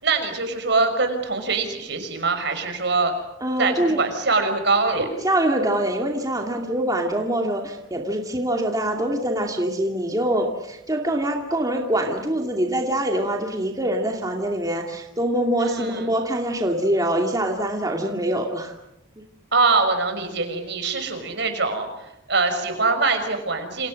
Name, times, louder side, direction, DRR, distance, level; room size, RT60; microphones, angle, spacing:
voice 1, 0.0-3.1 3.6-5.1 15.6-16.1 19.5-21.9 22.3-23.9, right 3 dB, 60° right, 7 dB, 5.8 m, -23 dB
voice 2, 3.4-4.0 5.2-18.7, right 1 dB, 20° right, 1 dB, 2.4 m, -24 dB
29.0 x 28.5 x 6.5 m, 0.85 s
head